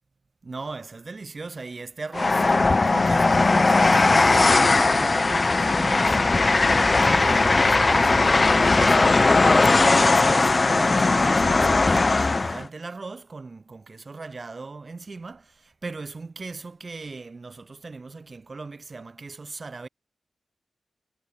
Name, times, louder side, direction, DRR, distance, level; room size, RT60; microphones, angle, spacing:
voice 1, 0.4-6.7 7.0-9.3 9.6-19.9, right 3 dB, 45° right, 5.4 m, -38 dB
Train, 2.1-12.6, left 3 dB, 35° left, 0.4 m, -19 dB
wide cardioid pair, 85°, 0 cm